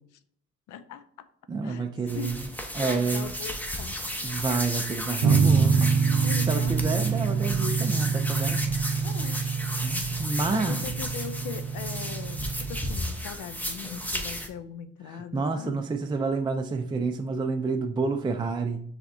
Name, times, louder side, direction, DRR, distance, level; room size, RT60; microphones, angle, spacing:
voice 1, 0.7-1.3 1.6-1.9 2.1-4.0 6.2-7.1 9.0-9.4 10.5-15.8, left 8 dB, 80° left, 12 dB, 0.5 m, -40 dB
voice 2, 1.5-2.4 2.7-3.3 4.2-9.1 9.8-10.8 15.1-18.8, right 4 dB, 15° right, 4 dB, 0.4 m, -29 dB
sound 1, 2.1-14.5, equal, 5° left, 0.8 m, -34 dB
sound 2, 5.2-12.9, right 5 dB, 65° right, 0.6 m, -26 dB
5.9 x 3.3 x 2.6 m, 0.63 s
cardioid pair, 90°, 30 cm